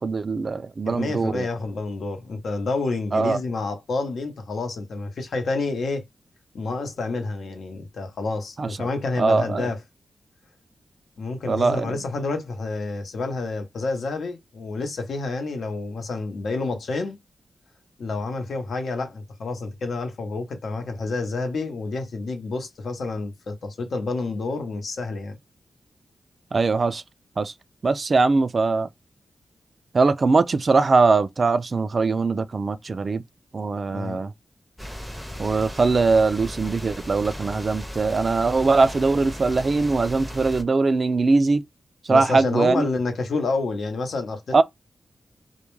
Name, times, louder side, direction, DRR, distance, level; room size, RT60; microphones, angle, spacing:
voice 1, 0.0-1.5 3.1-3.4 8.6-8.9 9.2-9.7 11.5-12.0 26.5-27.0 27.4-27.5 27.8-28.9 29.9-33.2 33.5-34.3 35.4-41.6 42.0-42.9 44.5-44.6, right 3 dB, 45° right, 0.3 m, -21 dB
voice 2, 0.9-6.0 6.5-9.8 11.2-17.2 18.0-25.4 33.9-34.2 42.1-44.6, left 3 dB, 80° left, 0.8 m, -29 dB
sound 1, 34.8-40.6, equal, 5° left, 0.6 m, -36 dB
2.3 x 2.1 x 3.0 m
wide cardioid pair, 95°, 0 cm